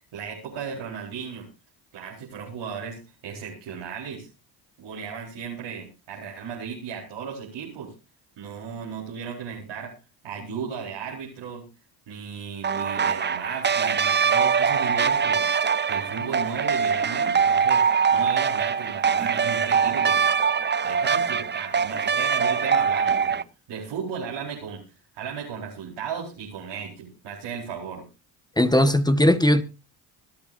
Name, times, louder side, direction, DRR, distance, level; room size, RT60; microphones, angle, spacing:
voice 1, 0.0-1.5 1.9-4.3 4.8-7.9 8.4-10.0 10.2-11.7 12.1-15.5 15.9-20.5 20.8-23.4 23.7-24.8 25.1-28.0, right 6 dB, 75° right, 4.6 m, -35 dB
sound 1, 12.6-23.4, right 6 dB, 20° right, 0.6 m, -23 dB
voice 2, 28.6-29.6, left 1 dB, 10° left, 1.4 m, -18 dB
25.0 x 8.8 x 2.7 m
supercardioid pair, 60°, 49 cm